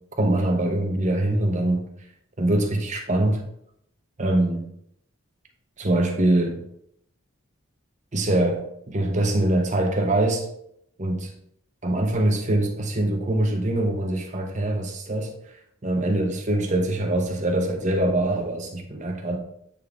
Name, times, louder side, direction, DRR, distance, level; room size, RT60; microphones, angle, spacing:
voice 1, 0.2-1.8 2.4-3.4 4.2-4.7 5.8-6.6 8.1-10.5 11.0-11.3 11.8-15.3 15.8-19.4, right 1 dB, 35° right, 3 dB, 0.9 m, -23 dB
8.4 x 3.7 x 3.5 m, 0.73 s
head